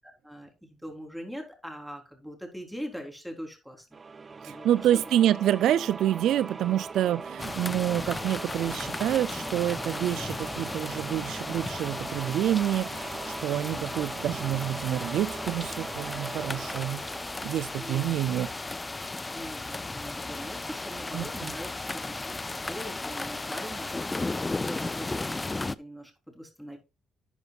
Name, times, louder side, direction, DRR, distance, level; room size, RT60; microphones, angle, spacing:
voice 1, 0.2-4.0 4.5-5.0 7.8-7.9 17.8-18.1 19.3-26.8, equal, ahead, 3.8 m, -42 dB
sound 1, 3.9-18.5, right 4 dB, 35° right, 0.6 m, -40 dB
voice 2, 4.4-17.0 17.4-18.5 21.1-21.5, right 11 dB, 80° right, 0.4 m, -27 dB
sound 2, 7.4-25.7, left 3 dB, 20° left, 0.5 m, -35 dB
12.0 x 9.1 x 2.4 m
cardioid pair, 90°, 0 cm